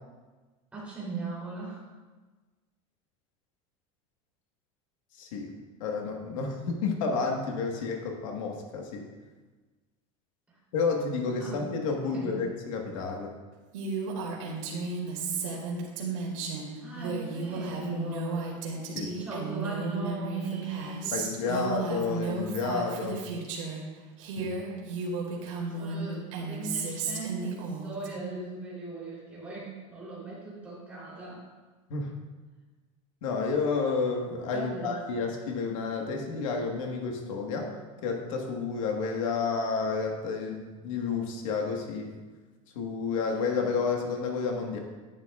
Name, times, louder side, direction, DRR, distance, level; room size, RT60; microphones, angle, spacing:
voice 1, 0.7-1.8 11.4-11.6 12.1-12.4 16.8-18.5 19.1-21.8 25.7-31.5 34.5-35.0, right 3 dB, 10° right, -7 dB, 3.1 m, -38 dB
voice 2, 5.1-9.1 10.7-13.3 18.9-19.1 21.1-23.2 24.3-24.6 31.9-32.1 33.2-37.7 38.0-42.1 42.7-44.8, left 4 dB, 80° left, 2 dB, 1.4 m, -30 dB
Female speech woman speaking, 13.7-23.8 24.2-28.1, right 4 dB, 80° right, 2.2 m, -34 dB
11.0 x 10.5 x 2.4 m, 1.3 s
supercardioid pair, 170°, 16 cm